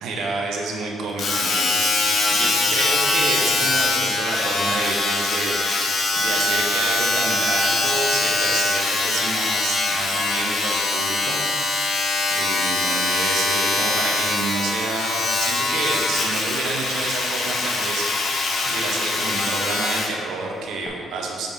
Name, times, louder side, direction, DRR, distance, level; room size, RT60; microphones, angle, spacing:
voice 1, 0.0-5.8 6.2-11.8 12.3-18.1 18.6-21.5, right 3 dB, 85° right, 0 dB, 0.9 m, -29 dB
Domestic sounds home sounds, 1.2-20.2 20.9-21.0, left 2 dB, 55° left, 1.0 m, -22 dB
6.2 x 5.4 x 3.6 m, 2.4 s
cardioid pair, 90°, 0 cm